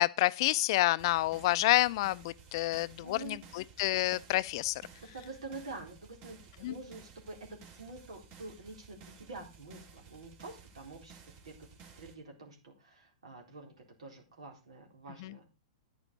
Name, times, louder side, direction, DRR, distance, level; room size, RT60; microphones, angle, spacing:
voice 1, 0.0-4.8 6.6-6.7 15.2-15.3, left 18 dB, 55° left, 0.5 m, -29 dB
sound 1, 1.0-12.1, right 5 dB, 40° right, 2.8 m, -55 dB
voice 2, 3.0-3.4 5.0-7.4 7.7-11.2 11.4-11.7 12.0-15.4, right 3 dB, 80° right, 4.0 m, -47 dB
10.0 x 9.1 x 4.1 m
hypercardioid pair, 115°, 3 cm